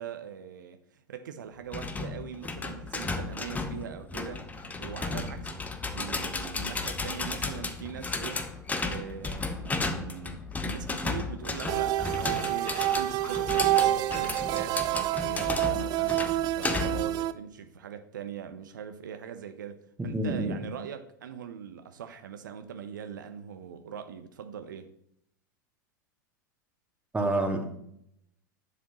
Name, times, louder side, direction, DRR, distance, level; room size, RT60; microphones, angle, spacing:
voice 1, 0.0-8.5 8.8-24.9, right 8 dB, 70° right, 0.7 m, -42 dB
sound 1, 1.7-17.1, left 3 dB, 15° left, 1.0 m, -34 dB
sound 2, 11.7-17.3, right 14 dB, 40° right, 0.5 m, -28 dB
voice 2, 20.0-20.6 27.1-27.7, right 2 dB, 10° right, 1.7 m, -28 dB
11.0 x 7.3 x 3.0 m
figure-of-eight pair, 90°, 11 cm